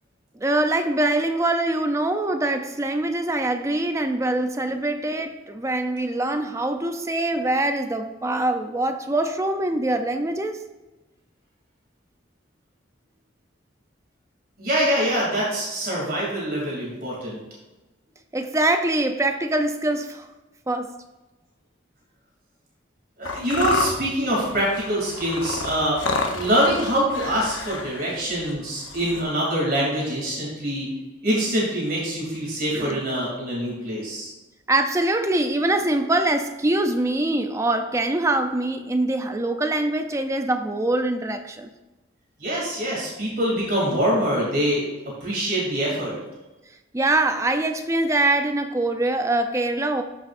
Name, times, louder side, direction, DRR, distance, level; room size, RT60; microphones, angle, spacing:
voice 1, 0.4-10.6 18.3-20.3 20.7-20.9 32.7-33.0 34.7-41.7 46.9-50.0, right 2 dB, 15° right, 7 dB, 0.4 m, -23 dB
voice 2, 14.6-17.4 23.2-26.0 26.3-30.9 31.2-34.3 42.4-44.8 45.2-46.2, equal, 50° right, -4 dB, 2.8 m, -24 dB
sound 1, 23.3-29.2, left 3 dB, 85° left, 0.9 m, -30 dB
13.0 x 5.9 x 2.5 m, 1.1 s
head